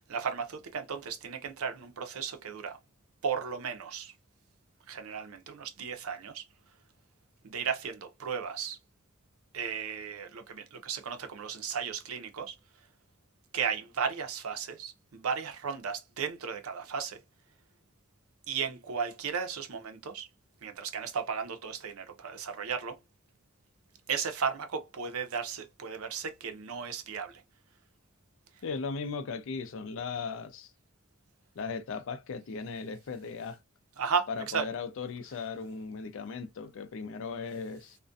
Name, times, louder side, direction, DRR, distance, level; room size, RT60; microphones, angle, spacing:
voice 1, 0.0-2.8 3.2-4.1 4.9-6.4 7.4-8.8 9.5-12.5 13.5-17.2 18.5-20.3 20.6-23.0 24.1-27.4 34.0-34.7, right 6 dB, 80° right, 0.6 m, -35 dB
voice 2, 28.6-30.7 31.6-33.6 34.3-38.0, left 5 dB, 60° left, 0.4 m, -37 dB
2.4 x 2.1 x 2.5 m
head